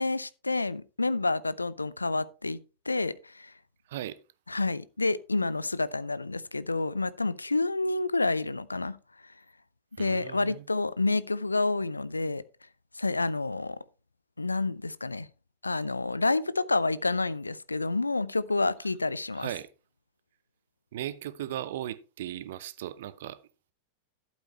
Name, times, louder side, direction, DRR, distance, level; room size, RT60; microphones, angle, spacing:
voice 1, 0.0-2.6 2.9-3.5 4.5-9.0 9.2-9.3 10.0-12.4 12.9-13.8 14.4-15.3 15.6-19.5, left 3 dB, 80° left, 0.5 m, -29 dB
voice 2, 10.0-10.6 19.4-19.7 20.9-23.4, right 12 dB, 55° right, 0.7 m, -37 dB
11.5 x 8.1 x 3.2 m
figure-of-eight pair, 90°, 0 cm